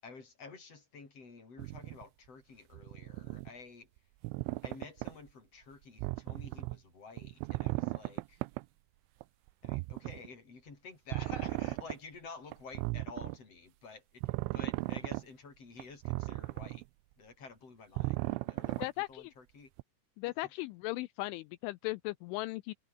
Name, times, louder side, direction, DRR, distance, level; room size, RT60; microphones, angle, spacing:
voice 1, 0.0-3.9 4.6-8.4 9.6-16.8 17.2-19.7 20.2-20.5, left 4 dB, 30° left, 6.3 m, -51 dB
sound 1, 1.6-2.0 2.7-3.5 4.2-5.1 6.0-6.8 7.2-8.7 9.2-9.3 9.7-10.3 11.1-12.0 12.5-13.4 14.2-15.2 15.8-16.8 18.0-18.9 19.8-19.9, right 24 dB, 85° right, 3.0 m, -36 dB
voice 2, 18.8-19.3 20.2-22.7, left 21 dB, 85° left, 3.1 m, -37 dB
omnidirectional pair, 5.6 m